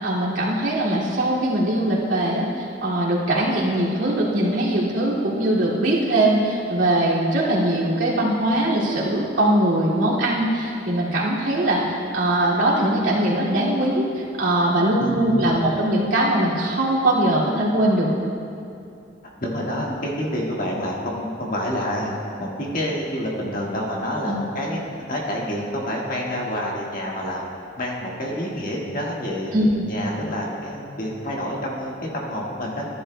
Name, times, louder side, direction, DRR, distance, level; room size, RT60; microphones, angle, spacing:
voice 1, 0.0-18.1 24.3-24.4 29.5-29.9, right 1 dB, 85° right, -7 dB, 2.3 m, -21 dB
voice 2, 15.0-15.5 19.4-22.1 22.4-24.8 25.1-27.4 27.8-29.5 29.8-32.9, equal, 45° left, -3 dB, 1.6 m, -28 dB
15.0 x 10.5 x 2.2 m, 2.6 s
head